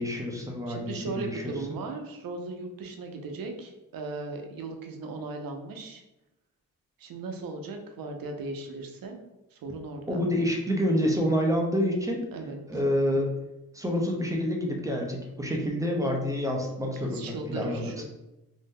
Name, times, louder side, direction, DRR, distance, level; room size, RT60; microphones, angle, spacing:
voice 1, 0.0-1.4 10.1-12.3 12.7-13.3 13.7-17.9, equal, 10° right, 0 dB, 0.5 m, -28 dB
voice 2, 0.7-6.0 7.0-9.2 9.5-10.2 12.3-12.6 17.0-18.0, right 3 dB, 75° right, 4 dB, 0.6 m, -37 dB
2.7 x 2.0 x 3.5 m, 0.96 s
cardioid pair, 90°, 35 cm